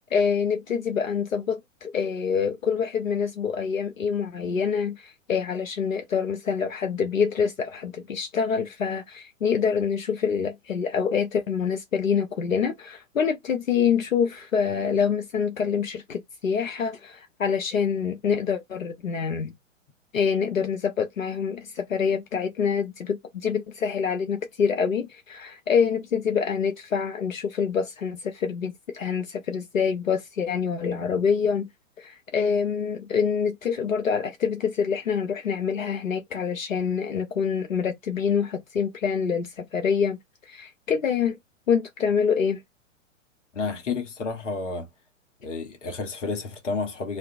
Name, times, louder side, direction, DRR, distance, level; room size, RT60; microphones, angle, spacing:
voice 1, 0.1-19.5 20.1-31.7 32.0-40.2 40.4-41.4 41.7-42.6, left 6 dB, 85° left, 0.5 m, -26 dB
voice 2, 43.5-44.9 45.4-47.2, left 4 dB, 65° left, 0.8 m, -30 dB
2.3 x 2.1 x 2.5 m
figure-of-eight pair, 105°, 39 cm